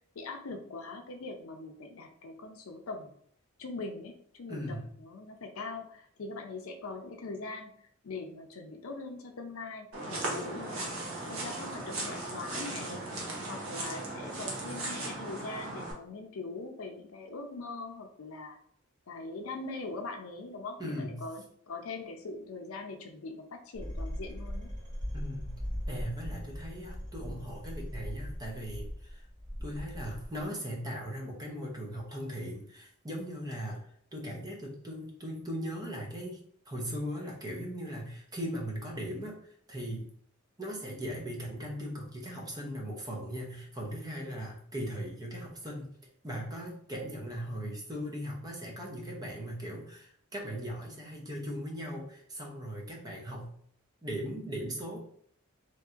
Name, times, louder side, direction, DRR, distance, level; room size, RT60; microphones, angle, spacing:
voice 1, 0.2-3.1 3.6-7.7 8.0-10.9 11.3-13.1 13.5-18.6 19.1-24.7, left 3 dB, 80° left, 5 dB, 0.5 m, -42 dB
voice 2, 4.5-4.9 20.8-21.3 25.1-25.6 25.9-29.3 29.6-33.8 34.1-39.4 39.7-40.1 40.6-45.9 46.2-53.5 54.0-55.0, equal, 20° right, -1 dB, 0.6 m, -39 dB
sound 1, 9.9-15.9, right 2 dB, 70° right, 0.8 m, -37 dB
sound 2, 23.7-30.5, equal, 35° right, 1.5 m, -39 dB
3.1 x 2.7 x 2.4 m, 0.64 s
head